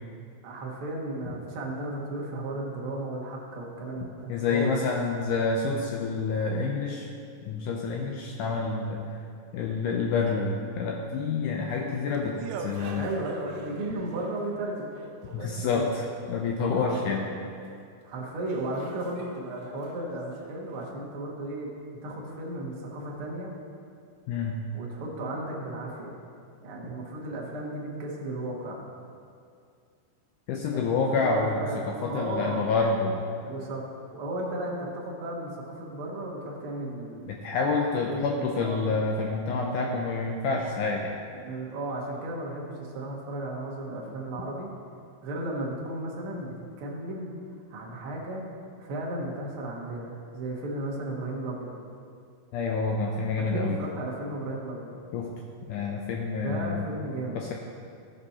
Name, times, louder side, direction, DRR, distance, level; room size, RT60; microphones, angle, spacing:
voice 1, 0.4-4.8 12.9-15.0 15.3-15.8 16.7-17.1 18.0-21.7 22.0-23.5 24.7-26.2 26.6-28.9 30.6-32.7 33.5-33.8 34.1-37.4 38.1-38.9 41.3-44.7 45.2-46.5 46.8-47.4 47.7-48.4 48.8-51.7 53.4-55.0 56.4-57.4, right 1 dB, 55° right, -3 dB, 1.5 m, -35 dB
voice 2, 4.3-7.1 7.4-9.0 9.5-13.1 15.3-17.3 24.3-24.6 30.5-33.3 37.3-41.1 52.5-53.8 55.1-55.3 55.7-57.0 57.3-57.5, left 4 dB, 90° left, 0 dB, 1.8 m, -28 dB
sound 1, 11.6-15.9 17.8-17.9 18.5-20.9, right 6 dB, 90° right, 1.9 m, -44 dB
15.5 x 5.3 x 4.2 m, 2.3 s
omnidirectional pair, 4.5 m